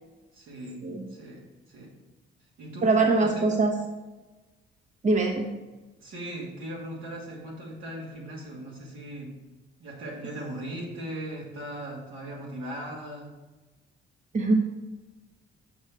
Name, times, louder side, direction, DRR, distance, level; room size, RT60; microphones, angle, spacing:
voice 1, 0.3-0.8 1.1-1.9 2.6-3.4 6.0-9.3 9.8-13.3, right 1 dB, 85° right, -3 dB, 2.7 m, -38 dB
voice 2, 2.8-3.8 5.0-5.5 14.3-14.5, right 3 dB, 35° right, 2 dB, 1.1 m, -23 dB
6.5 x 5.5 x 6.1 m, 1.2 s
cardioid pair, 90°, 20 cm